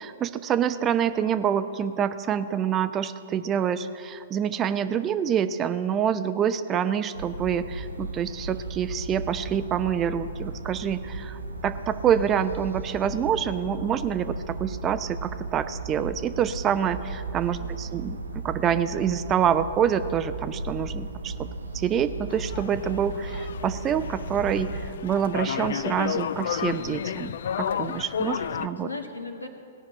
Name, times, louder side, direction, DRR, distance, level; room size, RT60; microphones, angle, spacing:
voice 1, 0.0-21.3 21.7-28.9, right 8 dB, 20° right, 12 dB, 0.5 m, -26 dB
sound 1, 7.1-24.9, right 3 dB, 80° right, 0.9 m, -36 dB
voice 2, 17.6-18.1 27.8-29.5, left 3 dB, 80° left, 4 dB, 1.5 m, -39 dB
sound 2, 22.3-28.7, left 8 dB, 55° left, 0.4 m, -32 dB
17.5 x 5.9 x 8.6 m, 2.6 s
figure-of-eight pair, 110°, 0 cm